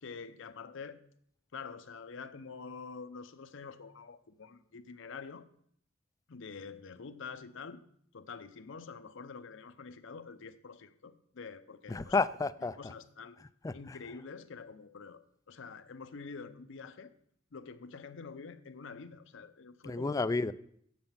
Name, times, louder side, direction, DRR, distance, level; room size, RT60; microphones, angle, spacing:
voice 1, 0.0-1.0 1.5-5.5 6.3-7.8 8.1-12.2 12.8-13.4 13.7-17.1 17.5-20.3, left 5 dB, 65° left, 11 dB, 0.6 m, -47 dB
voice 2, 11.9-12.9 13.6-14.0 19.8-20.5, left 3 dB, 15° left, 13 dB, 0.3 m, -31 dB
7.7 x 7.6 x 5.6 m, 0.66 s
head